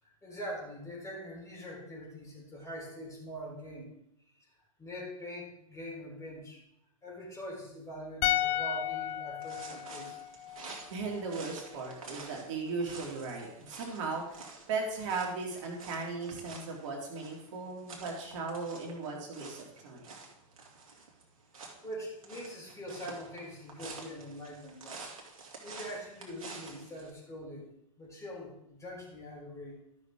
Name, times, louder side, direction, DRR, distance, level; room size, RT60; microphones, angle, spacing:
voice 1, 0.0-3.9 4.4-4.5 4.8-6.6 7.0-10.2 21.8-25.0 25.3-27.7 28.0-29.8, equal, 15° left, -3 dB, 4.0 m, -43 dB
sound 1, 8.2-11.4 11.7-11.8, left 13 dB, 40° left, 0.5 m, -34 dB
sound 2, 9.4-27.1, right 4 dB, 75° right, 2.3 m, -49 dB
voice 2, 10.9-14.4 14.7-20.1, right 4 dB, 60° right, -1 dB, 2.5 m, -37 dB
12.5 x 6.4 x 3.7 m, 0.80 s
hypercardioid pair, 95°, 18 cm